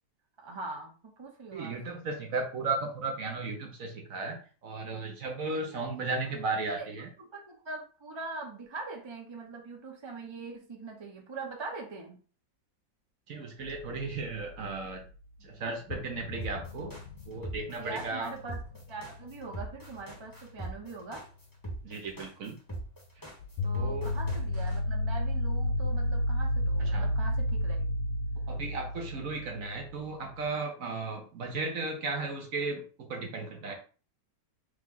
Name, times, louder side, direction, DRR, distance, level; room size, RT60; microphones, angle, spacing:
voice 1, 0.4-2.1 5.5-6.3 6.8-6.9 7.2-12.2 17.8-18.6 18.9-21.2 23.6-27.9, right 3 dB, 40° right, 1 dB, 0.4 m, -42 dB
voice 2, 1.5-7.1 13.3-15.0 15.4-17.0 17.3-18.3 21.8-22.6 23.7-24.1 26.8-27.1 28.5-33.7, right 3 dB, 55° right, 2 dB, 1.0 m, -35 dB
sound 1, 13.6-15.1 15.4-15.5 15.9-20.3 23.4-30.5, left 1 dB, 75° left, 1.2 m, -32 dB
sound 2, 16.4-24.8, right 2 dB, 15° left, 0.9 m, -40 dB
3.5 x 3.2 x 3.8 m, 0.38 s
omnidirectional pair, 2.0 m